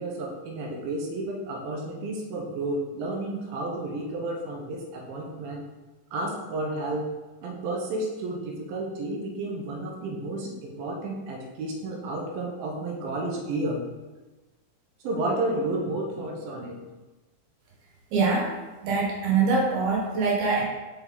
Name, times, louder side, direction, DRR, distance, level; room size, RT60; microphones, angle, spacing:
voice 1, 0.0-5.6 6.1-7.1 7.4-13.8 15.0-16.8, right 2 dB, 90° right, 0 dB, 2.7 m, -31 dB
voice 2, 18.1-18.5 18.8-20.6, right 4 dB, 70° right, -2 dB, 2.7 m, -23 dB
5.8 x 4.7 x 3.8 m, 1.2 s
omnidirectional pair, 4.0 m